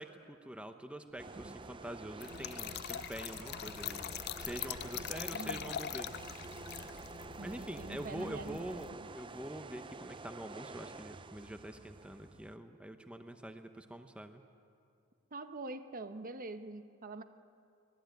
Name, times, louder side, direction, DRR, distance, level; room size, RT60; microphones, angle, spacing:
voice 1, 0.0-4.1 4.4-6.1 7.4-8.9 9.1-14.4, right 1 dB, 5° right, 7 dB, 0.9 m, -45 dB
sound 1, 1.1-6.5, right 1 dB, 80° right, 6.6 m, -58 dB
sound 2, 1.2-12.6, right 3 dB, 25° right, 0.5 m, -49 dB
Trickle dribble / Fill (with liquid), 2.2-8.9, left 9 dB, 50° left, 0.5 m, -43 dB
voice 2, 4.9-5.7 7.4-9.1 15.3-17.2, right 2 dB, 40° right, 9 dB, 1.1 m, -45 dB
23.5 x 19.0 x 9.3 m, 2.4 s
head